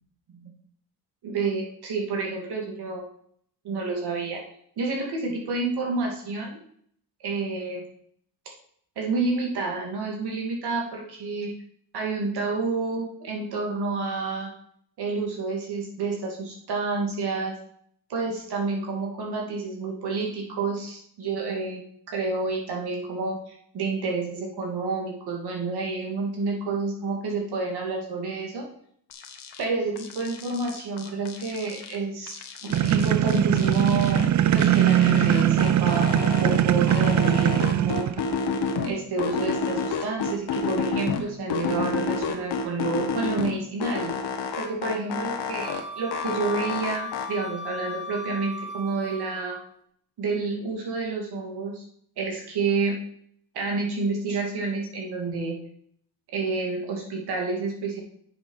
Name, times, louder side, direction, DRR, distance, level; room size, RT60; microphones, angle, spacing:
voice 1, 1.2-3.0 3.6-4.4 4.8-6.6 7.2-7.8 9.0-11.5 11.9-14.5 15.0-17.5 18.1-28.7 29.6-32.4 32.6-34.3 34.5-38.1 38.8-44.1 44.6-49.6 50.2-51.8 52.2-53.0 53.5-55.6 56.3-58.0, right 3 dB, 70° right, -1 dB, 2.5 m, -29 dB
sound 1, 29.1-29.6 30.0-32.0 32.3-34.3 34.6-36.6 36.9-38.9 39.2-41.2 41.5-43.5 43.8-45.8 46.1-47.3, left 5 dB, 70° left, 1.4 m, -30 dB
sound 2, 32.7-38.4, right 10 dB, 45° right, 0.5 m, -21 dB
Wind instrument woodwind instrument, 45.6-49.6, left 2 dB, 5° left, 2.8 m, -37 dB
7.8 x 6.9 x 5.5 m, 0.64 s
cardioid pair, 120°, 40 cm